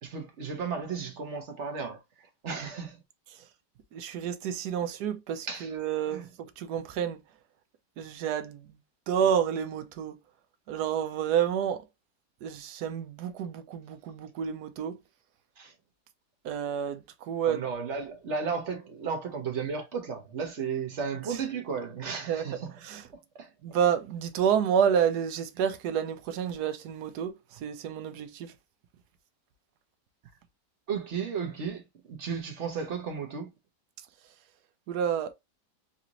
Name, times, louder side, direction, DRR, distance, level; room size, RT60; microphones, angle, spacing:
voice 1, 0.0-3.0 5.5-5.7 6.1-6.3 15.6-15.7 17.4-22.7 23.4-23.5 30.9-33.5, right 6 dB, 50° right, 1.1 m, -34 dB
voice 2, 3.9-7.2 8.0-8.8 9.1-10.2 10.7-11.8 12.4-15.0 16.4-17.6 22.3-22.4 22.8-23.0 23.6-27.3 27.6-28.5 34.9-35.3, right 8 dB, 75° right, 1.1 m, -29 dB
3.9 x 2.5 x 2.8 m
omnidirectional pair, 1.8 m